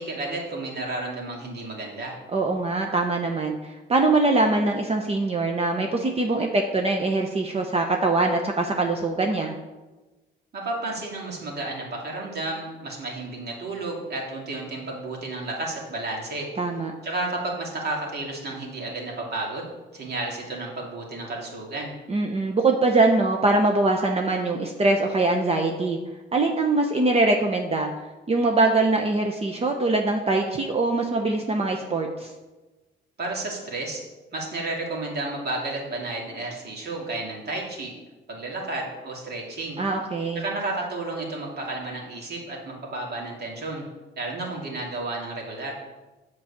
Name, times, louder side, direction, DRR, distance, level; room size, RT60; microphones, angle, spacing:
voice 1, 0.0-2.2 10.5-16.5 17.0-21.9 33.2-34.0 34.3-37.9 38.3-39.8 40.3-43.8 44.2-45.7, right 2 dB, 55° right, -2 dB, 2.7 m, -32 dB
voice 2, 2.3-9.5 16.6-16.9 22.1-26.0 26.3-27.9 28.3-32.3 39.8-40.4, right 2 dB, 30° right, 3 dB, 0.8 m, -23 dB
7.7 x 4.7 x 7.1 m, 1.2 s
cardioid pair, 90°, 20 cm